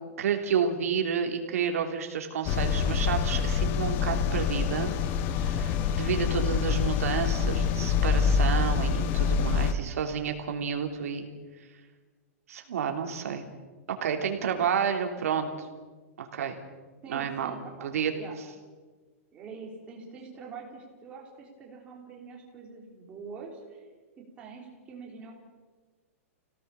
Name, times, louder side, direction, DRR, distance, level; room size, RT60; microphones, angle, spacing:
voice 1, 0.0-4.9 5.4-11.3 12.5-13.5 13.9-15.7 16.2-16.6 17.1-17.5 17.8-18.1, right 7 dB, 75° right, 4 dB, 3.2 m, -30 dB
sound 1, 2.5-9.7, left 6 dB, 20° left, 0.7 m, -26 dB
voice 2, 9.4-9.8 17.0-18.4 19.3-23.9 24.4-25.3, right 4 dB, 15° right, -1 dB, 3.6 m, -45 dB
26.5 x 17.5 x 7.0 m, 1.4 s
supercardioid pair, 175°, 8 cm